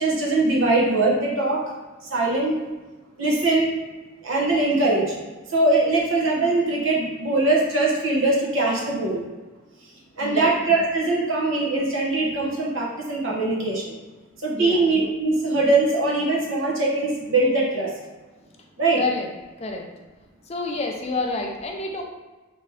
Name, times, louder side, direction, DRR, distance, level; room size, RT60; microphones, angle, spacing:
voice 1, 0.0-1.6 2.0-2.5 3.2-3.7 4.2-5.1 5.5-9.2 10.2-14.0 14.4-17.9 18.8-19.0, right 2 dB, 70° right, -3 dB, 0.9 m, -21 dB
voice 2, 18.9-19.3 19.6-19.8 20.5-22.0, left 3 dB, 30° left, 1 dB, 0.4 m, -28 dB
3.5 x 2.9 x 3.1 m, 1.2 s
head